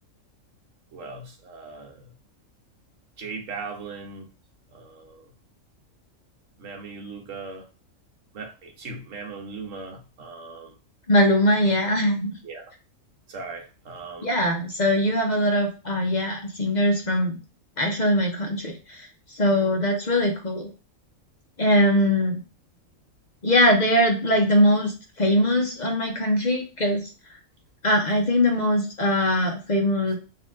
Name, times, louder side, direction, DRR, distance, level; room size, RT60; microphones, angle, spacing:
voice 1, 0.9-2.1 3.2-4.3 4.7-5.3 6.6-7.6 8.3-10.7 12.4-12.7 13.3-14.3, right 4 dB, 75° right, 1.3 m, -38 dB
voice 2, 11.1-12.3 14.2-17.4 17.8-20.7 21.6-22.4 23.4-24.9 25.2-27.1 27.8-30.2, left 1 dB, 45° left, 0.7 m, -21 dB
4.1 x 2.8 x 3.6 m
omnidirectional pair, 1.4 m